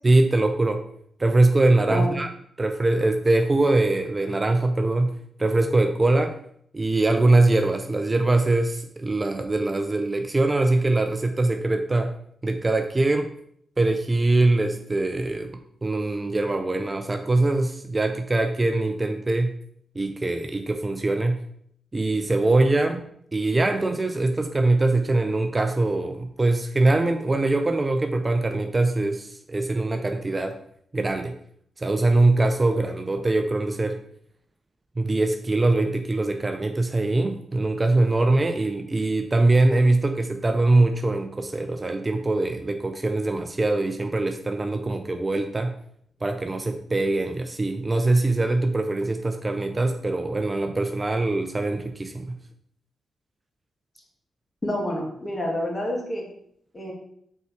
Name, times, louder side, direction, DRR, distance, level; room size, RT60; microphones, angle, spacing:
voice 1, 0.0-0.8 1.2-2.3 2.6-6.4 6.7-12.2 12.4-13.3 13.8-19.6 19.9-21.4 21.9-30.6 30.9-31.4 31.8-34.0 35.0-45.8 46.2-52.4, right 2 dB, 30° right, 6 dB, 0.6 m, -22 dB
voice 2, 54.6-56.3 56.7-56.9, left 1 dB, 30° left, -1 dB, 2.5 m, -28 dB
5.5 x 4.7 x 4.9 m, 0.67 s
cardioid pair, 60°, 0 cm